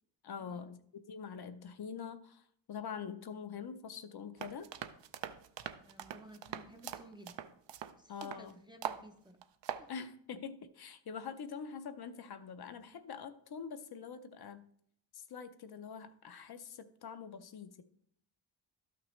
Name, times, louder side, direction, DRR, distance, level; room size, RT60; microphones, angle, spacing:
voice 1, 0.2-0.8 1.1-4.7 8.1-8.5 9.9-14.7 15.1-17.8, left 6 dB, 55° left, 10 dB, 0.6 m, -45 dB
sound 1, 4.4-8.5 8.8-9.0 9.4-9.9, right 9 dB, 65° right, 0.6 m, -42 dB
voice 2, 5.6-7.4 8.0-9.4 9.8-9.9, equal, 10° right, 3 dB, 0.5 m, -55 dB
12.5 x 5.9 x 3.1 m, 0.66 s
wide cardioid pair, 180°, 46 cm